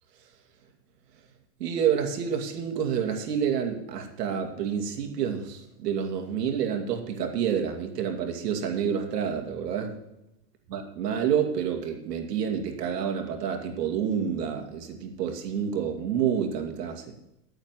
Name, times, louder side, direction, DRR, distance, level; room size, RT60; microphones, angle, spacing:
voice 1, 1.6-10.0 10.7-17.1, right 8 dB, 85° right, 4 dB, 2.5 m, -28 dB
9.7 x 8.7 x 7.6 m, 0.86 s
supercardioid pair, 180°, 47 cm